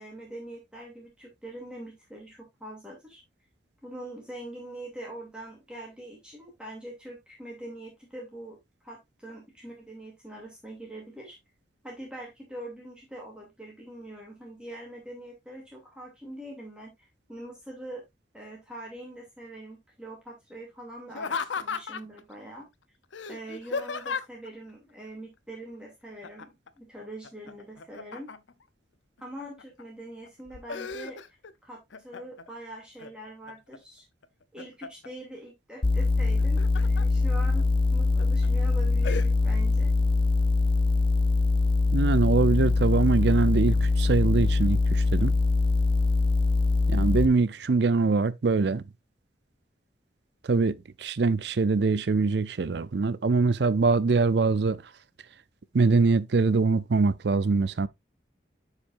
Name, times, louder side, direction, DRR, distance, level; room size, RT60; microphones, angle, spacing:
voice 1, 0.0-3.2 3.8-8.6 8.8-11.4 11.8-18.0 18.3-22.7 23.3-28.3 29.2-31.2 31.6-34.0 34.5-37.7 37.9-39.9, right 1 dB, 5° right, 2.6 m, -43 dB
Laughter, 21.1-22.2 23.1-24.5 26.2-26.7 27.0-28.6 29.2-29.8 30.3-31.5 31.9-32.5 33.0-33.8 34.2-35.1 36.2-37.1 37.6-37.7 38.2-38.5 39.0-39.3, left 5 dB, 90° left, 0.6 m, -35 dB
sound 1, 35.8-47.3, left 3 dB, 30° left, 0.4 m, -23 dB
voice 2, 41.9-45.3 46.9-48.8 50.4-54.8 55.7-57.9, right 4 dB, 70° right, 0.5 m, -23 dB
10.0 x 4.9 x 2.5 m
head